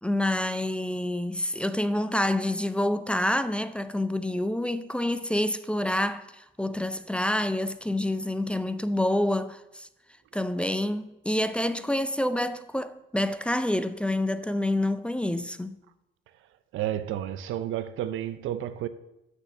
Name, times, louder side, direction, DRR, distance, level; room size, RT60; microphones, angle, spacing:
voice 1, 0.0-9.9 10.3-15.8, left 1 dB, 5° left, 0.5 m, -27 dB
voice 2, 16.7-18.9, right 11 dB, 85° right, 0.6 m, -31 dB
6.4 x 6.3 x 6.5 m
cardioid pair, 90°, 20 cm